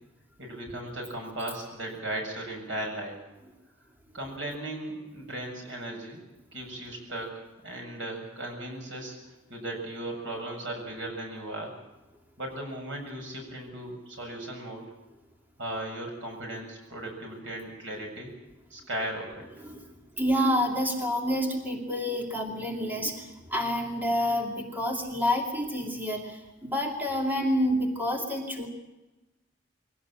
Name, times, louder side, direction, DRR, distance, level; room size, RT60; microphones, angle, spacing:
voice 1, 0.4-3.2 4.1-6.2 6.5-9.2 9.5-11.8 12.4-14.9 15.6-18.3 18.7-19.5, right 1 dB, 80° right, 2 dB, 7.3 m, -37 dB
voice 2, 20.2-28.7, equal, 10° right, 1 dB, 2.6 m, -28 dB
23.0 x 17.0 x 8.9 m, 1.1 s
head